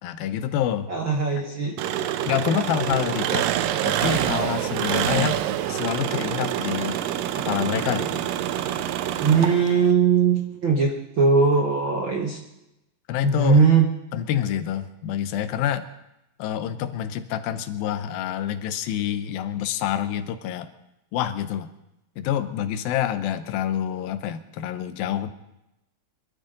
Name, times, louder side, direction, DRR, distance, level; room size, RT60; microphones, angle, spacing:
voice 1, 0.0-0.9 2.3-3.5 3.9-5.4 5.7-7.0 7.4-8.2 13.1-13.6 14.1-15.8 16.4-20.7 21.1-21.7 22.2-25.3, left 10 dB, 85° left, 10 dB, 2.7 m, -27 dB
voice 2, 0.9-1.8 9.2-10.9 11.2-12.4 13.2-13.9, right 5 dB, 60° right, 0 dB, 1.3 m, -19 dB
Engine, 1.8-9.9, right 11 dB, 80° right, 2.3 m, -26 dB
24.0 x 13.0 x 3.9 m, 0.91 s
omnidirectional pair, 4.1 m